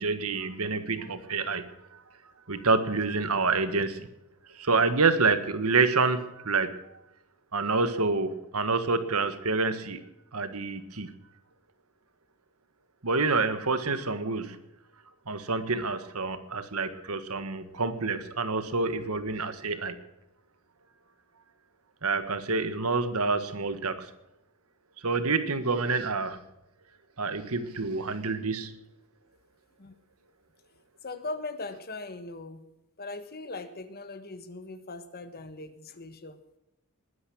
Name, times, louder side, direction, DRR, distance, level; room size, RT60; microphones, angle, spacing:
voice 1, 0.0-2.0 2.5-4.1 4.5-6.8 7.5-10.0 10.3-11.1 13.0-14.6 15.3-20.0 22.0-24.1 25.0-26.4 27.2-28.8, right 4 dB, 80° right, 11 dB, 1.6 m, -27 dB
voice 2, 31.0-32.6 33.0-36.4, left 3 dB, 45° left, 10 dB, 1.5 m, -39 dB
20.5 x 9.8 x 6.3 m, 0.90 s
head